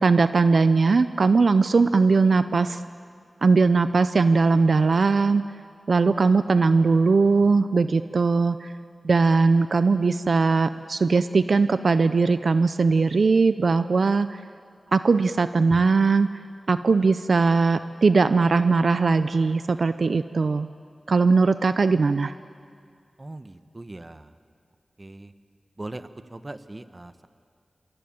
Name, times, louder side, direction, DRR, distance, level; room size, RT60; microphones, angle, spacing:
voice 1, 0.0-2.8 3.4-5.4 5.9-8.7 9.0-14.4 14.9-16.3 16.7-20.7 21.1-22.3, right 4 dB, 70° right, 12 dB, 0.6 m, -20 dB
voice 2, 23.2-24.3 25.0-25.3 25.8-27.3, right 2 dB, 30° right, 11 dB, 1.1 m, -40 dB
27.5 x 23.5 x 8.8 m, 2.2 s
wide cardioid pair, 80°, 0 cm